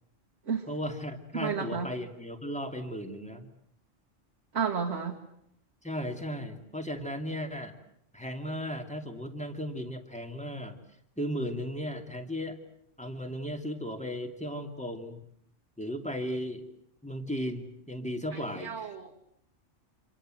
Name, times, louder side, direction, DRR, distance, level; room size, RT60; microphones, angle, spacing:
voice 1, 0.7-3.5 5.8-7.7 8.1-10.8 11.2-12.6 13.0-15.2 15.8-16.6 17.0-19.1, equal, 5° left, 5 dB, 2.7 m, -36 dB
voice 2, 1.3-1.9 4.5-5.2 18.3-19.1, right 6 dB, 75° right, -1 dB, 2.5 m, -32 dB
28.0 x 26.5 x 7.8 m, 0.73 s
omnidirectional pair, 1.3 m